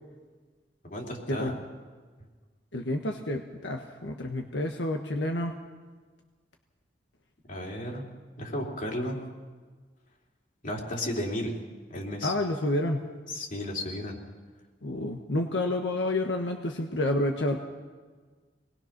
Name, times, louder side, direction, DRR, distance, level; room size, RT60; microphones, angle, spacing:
voice 1, 0.8-1.5 7.5-8.1 8.4-9.2 10.6-11.5 11.9-12.3 13.3-14.2, left 1 dB, 50° left, 0 dB, 3.6 m, -33 dB
voice 2, 2.7-5.5 12.2-13.1 14.8-17.6, left 1 dB, 85° left, 3 dB, 1.3 m, -29 dB
24.5 x 20.0 x 6.0 m, 1.5 s
head